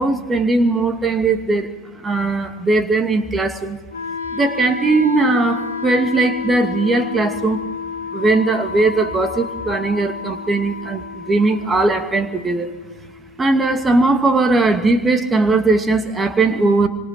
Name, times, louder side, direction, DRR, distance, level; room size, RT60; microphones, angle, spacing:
voice 1, 0.0-1.7 2.0-3.8 4.3-7.6 8.1-12.7 13.4-16.9, right 3 dB, 15° right, 7 dB, 2.4 m, -18 dB
Wind instrument woodwind instrument, 3.9-13.9, left 5 dB, 70° left, 1.8 m, -31 dB
29.5 x 25.5 x 6.0 m, 1.3 s
figure-of-eight pair, 90°, 0 cm